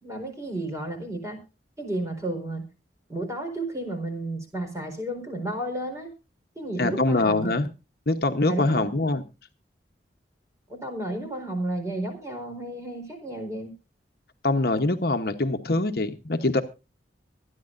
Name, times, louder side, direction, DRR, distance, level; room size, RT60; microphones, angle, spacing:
voice 1, 0.0-1.4 1.8-2.6 3.1-6.1 6.6-7.5 8.5-8.9 10.7-13.7, right 1 dB, 15° right, 4 dB, 4.2 m, -32 dB
voice 2, 6.8-7.7 8.1-9.2 14.4-16.6, left 2 dB, 55° left, 7 dB, 1.0 m, -24 dB
25.0 x 9.8 x 2.6 m, 0.29 s
head